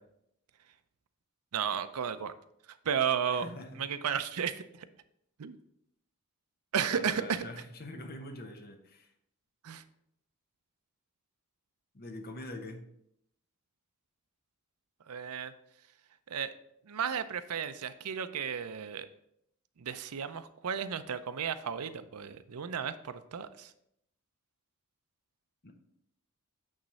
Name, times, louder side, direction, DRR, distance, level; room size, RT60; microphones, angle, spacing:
voice 1, 1.5-2.3 2.8-3.5 3.8-4.6 5.4-5.6 6.7-7.4 9.6-9.8 15.1-15.5 16.3-16.5 16.9-19.1 19.8-23.7, right 7 dB, 80° right, 11 dB, 0.5 m, -33 dB
voice 2, 3.3-4.1 6.9-9.1 11.9-12.9 25.6-25.7, left 1 dB, 45° left, 5 dB, 1.0 m, -44 dB
8.8 x 3.1 x 6.3 m, 0.76 s
head